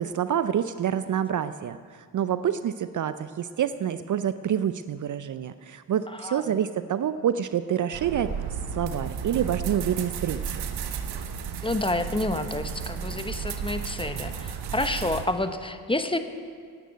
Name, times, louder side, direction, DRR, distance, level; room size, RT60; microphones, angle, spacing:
voice 1, 0.0-8.3 8.7-10.6, right 9 dB, 45° right, 13 dB, 0.5 m, -27 dB
voice 2, 6.1-6.6 11.6-16.2, left 2 dB, 10° left, 8 dB, 1.0 m, -29 dB
sound 1, 7.9-15.3, right 7 dB, 65° right, 1.1 m, -33 dB
9.6 x 9.3 x 9.3 m, 2.1 s
supercardioid pair, 50°, 42 cm